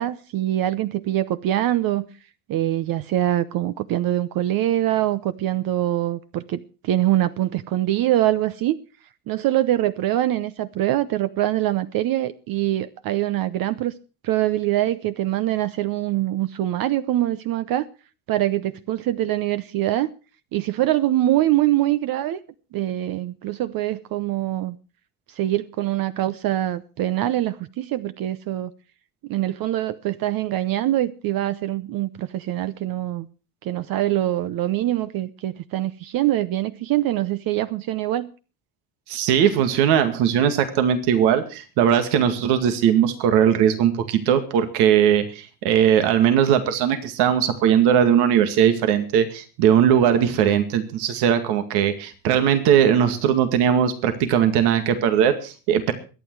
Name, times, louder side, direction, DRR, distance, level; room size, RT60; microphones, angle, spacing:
voice 1, 0.0-2.1 2.5-8.8 9.3-13.9 14.2-17.9 18.3-20.1 20.5-22.4 22.7-24.8 25.3-28.7 29.3-33.3 33.6-38.3, right 14 dB, 60° right, 0.9 m, -24 dB
voice 2, 39.1-55.9, right 9 dB, 90° right, 2.2 m, -19 dB
22.5 x 9.4 x 4.7 m
cardioid pair, 115°, 39 cm